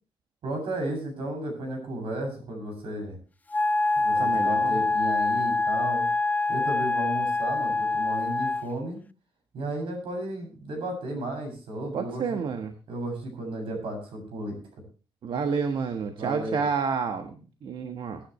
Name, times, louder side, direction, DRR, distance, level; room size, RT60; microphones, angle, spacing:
voice 1, 0.4-3.2 4.0-6.1 6.5-9.0 9.5-12.4 12.9-14.6 16.1-16.6, right 1 dB, 85° right, 3 dB, 7.3 m, -34 dB
Wind instrument woodwind instrument, 3.5-8.7, left 3 dB, 20° left, 0.6 m, -25 dB
voice 2, 4.2-4.7 11.9-12.7 15.2-18.2, right 5 dB, 65° right, 7 dB, 1.3 m, -29 dB
22.5 x 10.0 x 3.1 m, 0.35 s
cardioid pair, 125°, 9 cm